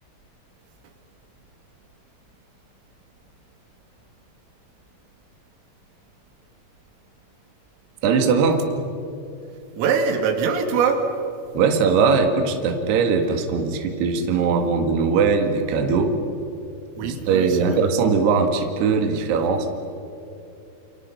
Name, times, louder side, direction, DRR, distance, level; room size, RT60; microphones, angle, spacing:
voice 1, 8.0-8.6 11.5-16.1 17.0-19.7, right 5 dB, 60° right, 4 dB, 3.7 m, -20 dB
voice 2, 9.7-11.1 17.0-17.8, right 6 dB, 85° right, 5 dB, 4.9 m, -23 dB
29.0 x 28.0 x 5.9 m, 2.7 s
omnidirectional pair, 5.8 m